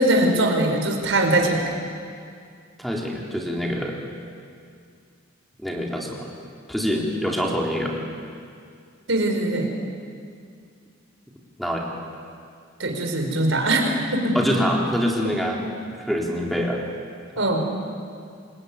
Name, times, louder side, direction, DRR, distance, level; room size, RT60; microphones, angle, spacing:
voice 1, 0.0-1.7 9.1-9.7 12.8-14.4 15.2-15.3 17.4-17.6, right 1 dB, 70° right, 2 dB, 5.0 m, -21 dB
voice 2, 2.8-4.0 5.6-6.3 6.7-8.0 11.6-11.8 14.3-15.6 16.0-16.8, equal, ahead, -2 dB, 3.8 m, -25 dB
27.0 x 22.0 x 9.7 m, 2.3 s
head